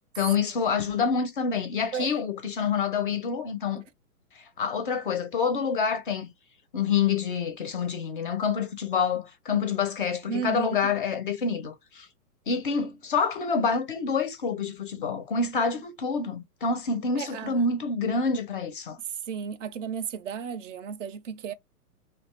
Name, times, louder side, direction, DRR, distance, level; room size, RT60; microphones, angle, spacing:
voice 1, 0.1-3.8 4.3-6.3 6.7-12.1 12.5-19.0, left 5 dB, 35° left, 0.4 m, -27 dB
voice 2, 10.3-11.0 17.2-17.6 19.0-21.5, right 7 dB, 55° right, 0.5 m, -34 dB
2.5 x 2.2 x 3.0 m
hypercardioid pair, 130°, 47 cm